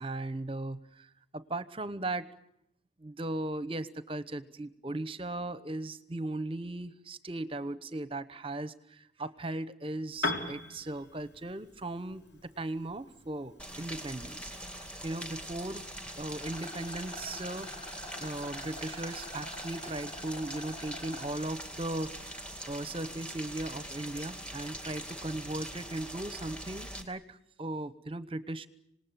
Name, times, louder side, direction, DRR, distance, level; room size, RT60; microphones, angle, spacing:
voice 1, 0.0-2.3 3.0-14.5 15.0-15.9 16.2-17.7 18.2-28.7, right 2 dB, 30° right, 14 dB, 1.0 m, -37 dB
Piano, 10.1-17.9, left 2 dB, 70° left, 3.7 m, -43 dB
Rain, 13.6-27.0, equal, 5° left, 2.5 m, -43 dB
Rattle, 16.4-21.3, left 1 dB, 30° left, 5.3 m, -46 dB
26.5 x 19.5 x 9.1 m, 0.80 s
head